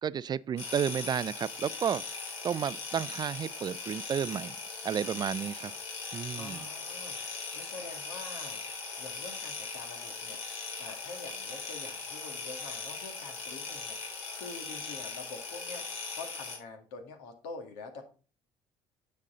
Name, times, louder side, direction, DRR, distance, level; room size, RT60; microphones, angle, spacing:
voice 1, 0.0-2.0 2.4-4.6 4.8-5.7 6.1-6.6, right 8 dB, 40° right, 0.4 m, -32 dB
sound 1, 0.6-16.6, left 4 dB, 70° left, 3.4 m, -40 dB
voice 2, 6.3-15.8 16.1-18.0, left 4 dB, 85° left, 2.0 m, -46 dB
9.8 x 5.4 x 3.9 m
supercardioid pair, 70°, 11 cm